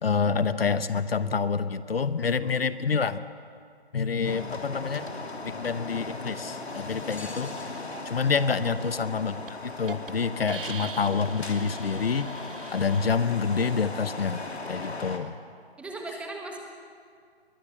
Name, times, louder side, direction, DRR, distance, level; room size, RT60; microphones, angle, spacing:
voice 1, 0.0-3.2 3.9-5.1 5.4-7.5 8.0-9.4 9.6-12.3 12.7-15.4, left 5 dB, 65° left, 13 dB, 1.0 m, -27 dB
sound 1, 4.2-15.2, left 2 dB, 80° left, 3.0 m, -38 dB
voice 2, 8.6-9.2 15.8-16.6, right 2 dB, 5° right, 1 dB, 1.3 m, -39 dB
Hiss, 9.5-9.6 9.9-10.1 10.5-13.1, right 6 dB, 55° right, 1.2 m, -42 dB
21.0 x 20.5 x 7.7 m, 2.2 s
figure-of-eight pair, 150°, 32 cm